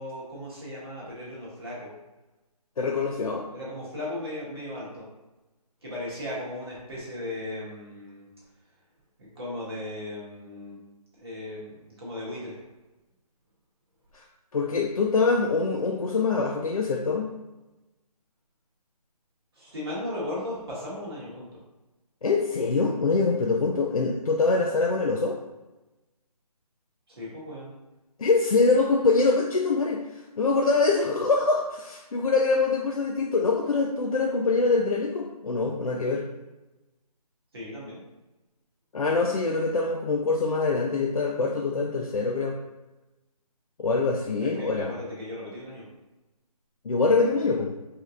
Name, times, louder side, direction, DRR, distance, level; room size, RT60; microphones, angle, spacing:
voice 1, 0.0-1.9 3.5-5.0 5.8-8.3 9.2-10.8 11.1-12.6 19.5-21.5 27.1-27.7 37.5-38.0 44.4-45.8, left 1 dB, 40° right, -7 dB, 1.5 m, -36 dB
voice 2, 2.8-3.5 14.1-14.2 14.5-17.3 22.2-25.4 28.2-36.2 38.9-42.6 43.8-44.9 46.8-47.7, left 3 dB, 60° left, 0 dB, 0.5 m, -24 dB
5.0 x 2.8 x 2.5 m, 1.1 s
figure-of-eight pair, 170°, 20 cm